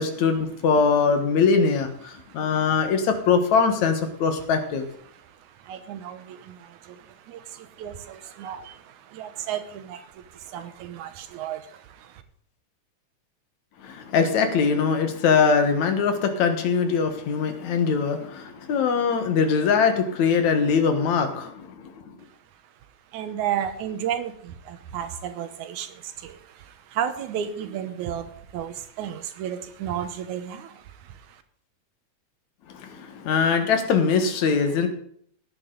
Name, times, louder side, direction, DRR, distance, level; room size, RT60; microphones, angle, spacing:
voice 1, 0.0-4.8 13.8-21.9 32.7-34.9, left 5 dB, 75° left, 7 dB, 2.8 m, -22 dB
voice 2, 2.1-2.7 5.1-12.2 22.2-22.7 23.1-31.4, right 9 dB, 85° right, 10 dB, 2.4 m, -34 dB
17.0 x 9.8 x 3.9 m, 0.63 s
omnidirectional pair, 3.3 m